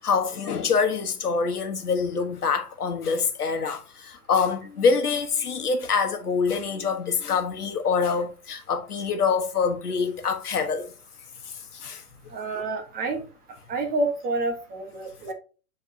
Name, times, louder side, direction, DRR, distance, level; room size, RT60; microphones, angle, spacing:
voice 1, 0.0-10.9 11.5-12.0, left 5 dB, 90° left, 1.4 m, -25 dB
voice 2, 12.3-13.2 13.7-15.3, right 2 dB, 20° right, 1.4 m, -28 dB
9.0 x 4.5 x 2.8 m
hypercardioid pair, 130°, 44 cm